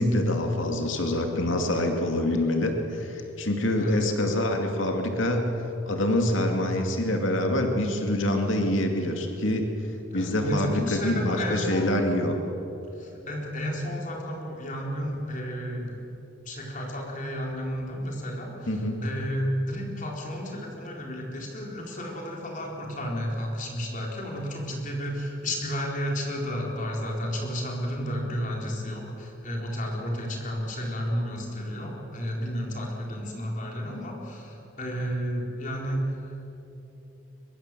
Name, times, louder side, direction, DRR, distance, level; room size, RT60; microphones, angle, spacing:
voice 1, 0.0-5.4 5.9-9.7 10.1-12.3 18.7-19.0, left 1 dB, 75° left, 3 dB, 2.4 m, -25 dB
voice 2, 10.1-11.9 13.0-16.0 16.5-36.1, equal, 40° left, -1 dB, 4.1 m, -32 dB
23.5 x 22.5 x 7.7 m, 3.0 s
head